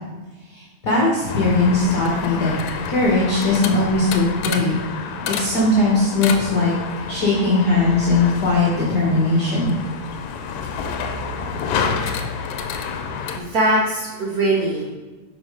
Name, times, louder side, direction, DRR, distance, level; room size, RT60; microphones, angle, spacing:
voice 1, 0.5-2.5 2.9-4.8 5.3-6.7 7.1-9.8, left 2 dB, 45° left, -5 dB, 1.4 m, -19 dB
sound 1, 1.3-13.4, left 6 dB, 80° left, 1.9 m, -29 dB
voice 2, 13.3-14.9, right 1 dB, 85° right, -5 dB, 0.8 m, -21 dB
6.1 x 5.3 x 4.9 m, 1.2 s
omnidirectional pair, 3.3 m